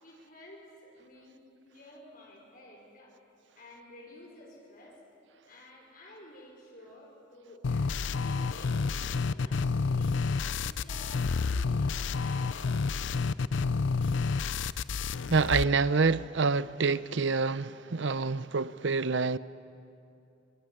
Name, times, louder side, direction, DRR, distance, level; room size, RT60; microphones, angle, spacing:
voice 1, 0.0-3.2 3.5-5.0 5.4-10.1 10.6-12.7, left 1 dB, 50° left, 5.2 m, -52 dB
sound 1, 7.6-15.6, left 4 dB, 75° left, 0.5 m, -29 dB
voice 2, 15.3-19.4, right 4 dB, 70° right, 0.7 m, -27 dB
24.0 x 23.5 x 9.9 m
head